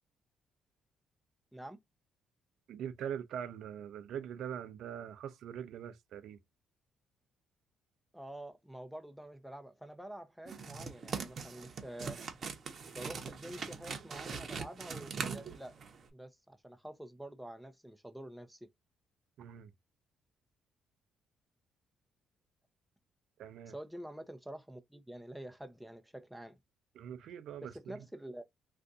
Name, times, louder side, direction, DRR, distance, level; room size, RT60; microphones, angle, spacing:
voice 1, 2.7-6.4 19.4-19.7 23.4-23.7 26.9-28.0, right 9 dB, 75° right, 0.6 m, -42 dB
voice 2, 8.1-12.2 12.8-15.7 16.1-18.7 23.7-26.6 27.6-28.4, right 1 dB, ahead, 0.7 m, -47 dB
sound 1, 10.5-16.0, right 5 dB, 45° right, 0.9 m, -42 dB
2.6 x 2.5 x 3.5 m
cardioid pair, 95°, 0 cm